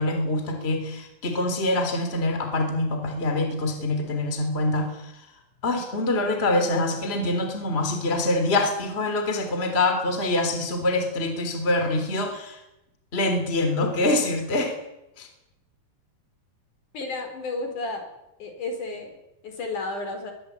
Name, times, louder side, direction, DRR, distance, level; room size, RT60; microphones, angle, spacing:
voice 1, 0.0-5.1 5.6-12.6 13.1-14.8 15.2-15.3, left 2 dB, 15° left, 6 dB, 3.4 m, -25 dB
voice 2, 16.9-18.1 18.4-19.2 19.4-20.3, left 3 dB, 55° left, 5 dB, 5.6 m, -32 dB
22.5 x 21.0 x 8.5 m, 0.90 s
omnidirectional pair, 4.4 m